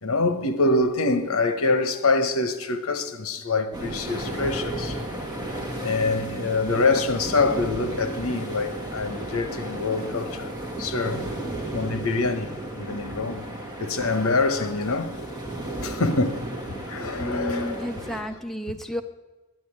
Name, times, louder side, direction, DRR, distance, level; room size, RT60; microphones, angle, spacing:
voice 1, 0.0-5.0 5.8-10.5 10.8-11.3 11.7-13.5 13.8-15.3 15.8-16.4 16.9-18.0, left 3 dB, 75° left, 1.1 m, -25 dB
sound 1, 3.7-18.2, right 1 dB, 20° right, 1.9 m, -34 dB
voice 2, 17.2-19.0, equal, ahead, 0.5 m, -31 dB
10.0 x 9.3 x 8.7 m
head